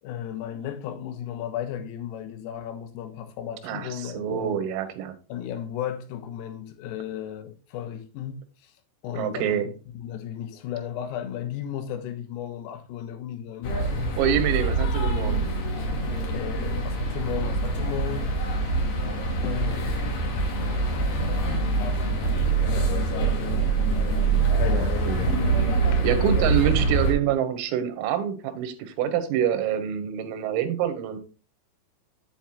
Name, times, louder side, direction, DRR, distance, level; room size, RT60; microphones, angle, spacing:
voice 1, 0.0-4.6 5.3-8.7 9.0-9.6 10.0-13.8 16.3-18.3 19.4-20.5 21.8-24.0 24.5-25.2 25.9-26.1, left 10 dB, 85° left, 3.8 m, -35 dB
voice 2, 3.6-5.2 9.2-9.7 14.2-15.4 24.7-25.4 26.0-31.2, right 10 dB, 85° right, 3.8 m, -26 dB
sound 1, 13.6-27.1, right 3 dB, 55° left, 3.1 m, -24 dB
9.1 x 8.6 x 2.4 m
omnidirectional pair, 5.8 m